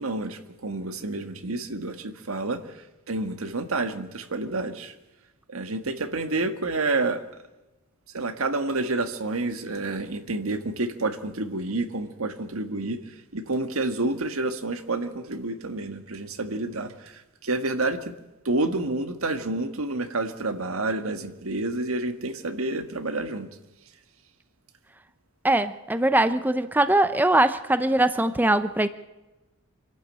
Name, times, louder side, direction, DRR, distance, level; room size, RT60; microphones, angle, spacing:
voice 1, 0.0-2.7 3.1-4.9 5.5-7.2 8.1-18.1 18.5-23.5, right 2 dB, 85° right, 8 dB, 1.6 m, -29 dB
voice 2, 25.4-28.9, right 1 dB, 10° right, 11 dB, 0.6 m, -21 dB
26.0 x 12.0 x 8.9 m, 1.1 s
head